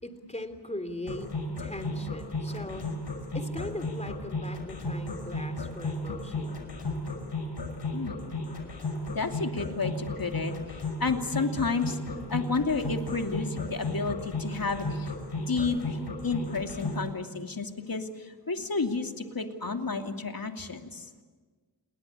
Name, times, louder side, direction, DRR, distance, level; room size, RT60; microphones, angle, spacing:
voice 1, 0.0-1.3 1.6-2.9 3.3-6.6, left 1 dB, 15° left, 9 dB, 3.4 m, -39 dB
sound 1, 1.1-17.0, left 3 dB, 75° left, 5.4 m, -34 dB
voice 2, 9.1-12.0 12.3-15.1 15.4-16.0 16.2-21.1, left 4 dB, 55° left, 4 dB, 2.7 m, -31 dB
29.0 x 21.0 x 8.5 m, 1.4 s
wide cardioid pair, 60°, 42 cm